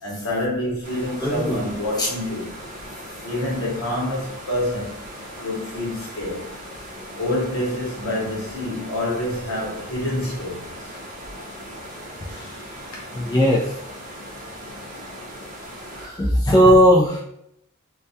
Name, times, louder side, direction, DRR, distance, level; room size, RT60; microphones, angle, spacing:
voice 1, 0.0-2.5 3.2-5.0 5.4-6.5 7.2-10.9 12.3-13.0, left 1 dB, 65° left, 0.9 m, -27 dB
sound 1, 0.8-16.1, equal, 35° right, 0.7 m, -38 dB
voice 2, 1.2-1.6 2.0-2.1 13.1-13.6 16.0-17.2, equal, 15° left, 0.3 m, -17 dB
2.2 x 2.2 x 2.6 m
head